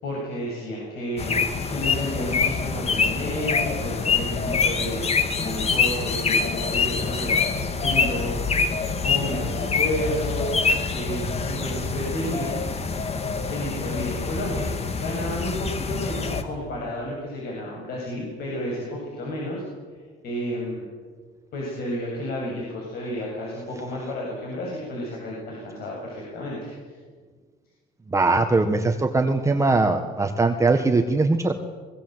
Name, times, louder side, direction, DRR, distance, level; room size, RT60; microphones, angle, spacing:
voice 1, 0.0-1.4 1.7-8.4 9.0-10.5 10.9-12.6 13.5-14.7 15.0-19.6 19.9-20.0 20.2-20.9 21.5-27.0, left 1 dB, 70° left, -2 dB, 7.7 m, -31 dB
sound 1, 1.2-16.4, left 5 dB, 35° left, 2.4 m, -25 dB
voice 2, 28.1-31.5, right 3 dB, 15° right, 5 dB, 1.6 m, -21 dB
23.5 x 21.5 x 8.1 m, 1.5 s
cardioid pair, 110°, 17 cm